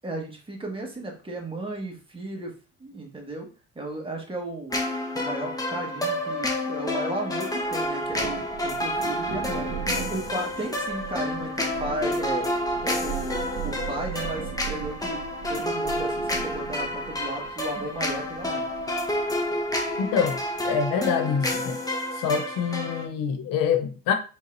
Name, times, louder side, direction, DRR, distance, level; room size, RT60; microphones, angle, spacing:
voice 1, 0.0-2.5 2.8-3.5 3.7-4.8 5.1-12.5 12.8-15.2 15.5-18.7, right 1 dB, 15° right, 1.5 m, -34 dB
sound 1, 4.7-23.1, left 1 dB, 10° left, 1.1 m, -29 dB
Thunder, 7.6-20.8, right 9 dB, 40° right, 1.4 m, -39 dB
voice 2, 20.0-21.8 22.1-24.1, left 7 dB, 65° left, 0.8 m, -26 dB
4.6 x 3.8 x 2.6 m
supercardioid pair, 90°, 35 cm